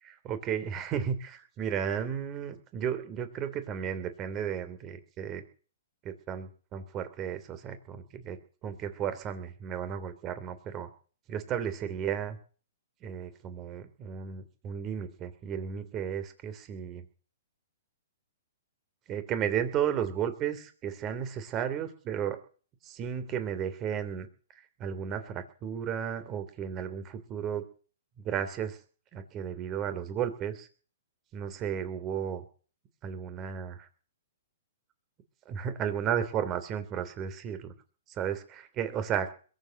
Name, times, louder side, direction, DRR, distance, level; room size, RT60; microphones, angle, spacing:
voice 1, 0.0-5.4 6.0-10.9 11.3-12.4 13.0-17.1 19.1-22.4 22.8-24.3 24.6-27.6 28.2-28.8 29.1-30.7 31.3-32.4 33.0-33.9 35.4-37.7 38.1-39.3, right 8 dB, 25° right, 11 dB, 3.1 m, -34 dB
22.0 x 7.9 x 7.7 m, 0.41 s
hypercardioid pair, 145°, 0 cm